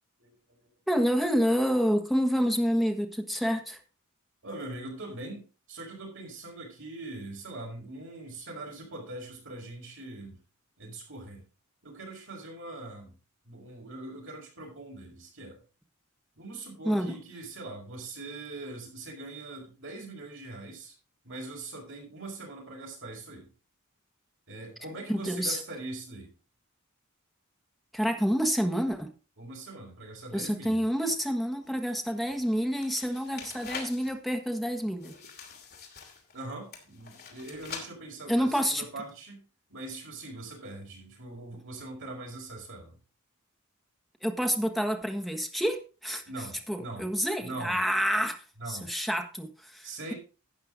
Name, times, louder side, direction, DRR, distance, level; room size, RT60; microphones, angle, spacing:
voice 1, 0.2-0.7 4.4-10.4 10.8-11.4 11.8-13.1 13.4-15.6 16.4-20.9 21.2-23.5 24.5-26.3 29.4-30.8 36.3-39.4 39.7-43.0 46.2-47.1 47.4-47.8 48.6-48.9 49.8-50.1, right 2 dB, 60° right, 5.0 m, -42 dB
voice 2, 0.9-3.8 16.8-17.1 25.1-25.6 27.9-29.1 30.3-35.1 38.3-38.8 44.2-46.2 46.7-48.4 48.7-50.1, equal, ahead, 1.3 m, -28 dB
sound 1, 31.6-34.1 35.0-36.4 36.7-37.9, left 6 dB, 45° left, 2.8 m, -44 dB
12.0 x 8.7 x 3.9 m
head